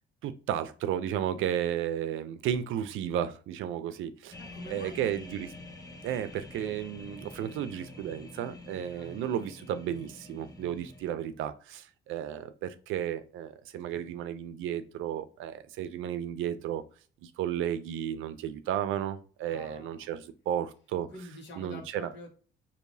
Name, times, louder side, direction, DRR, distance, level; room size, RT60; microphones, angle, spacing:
voice 1, 0.2-4.4 4.7-5.5 6.0-16.8 17.2-21.1 21.6-22.1, right 10 dB, 85° right, 0.5 m, -33 dB
sound 1, 4.3-11.1, left 2 dB, 20° left, 0.7 m, -47 dB
voice 2, 4.4-5.0 8.7-9.1 13.7-14.0 19.5-20.1 21.1-22.3, left 2 dB, 60° left, 1.5 m, -47 dB
4.7 x 2.9 x 2.7 m
cardioid pair, 90°, 20 cm